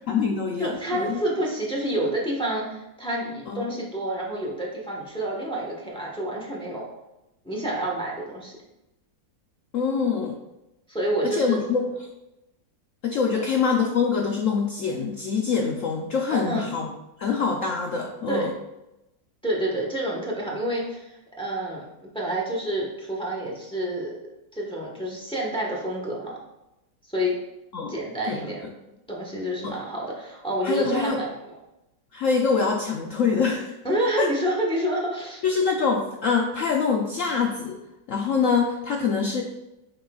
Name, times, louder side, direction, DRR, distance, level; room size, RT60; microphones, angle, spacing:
voice 1, 0.1-1.2 3.5-3.7 9.7-10.4 11.2-12.1 13.0-16.9 17.2-18.5 27.7-27.9 28.3-28.7 29.6-29.8 30.6-31.2 32.1-33.7 34.2-34.3 35.4-37.8 38.1-39.4, left 5 dB, 90° left, 1 dB, 0.7 m, -25 dB
voice 2, 0.6-6.9 7.4-8.6 10.9-11.6 16.3-16.8 18.3-18.5 19.4-24.1 24.5-26.4 27.1-27.4 27.9-28.6 29.1-31.3 33.8-35.4, right 1 dB, 5° left, -3 dB, 1.0 m, -28 dB
7.7 x 5.5 x 2.4 m, 0.93 s
omnidirectional pair, 2.0 m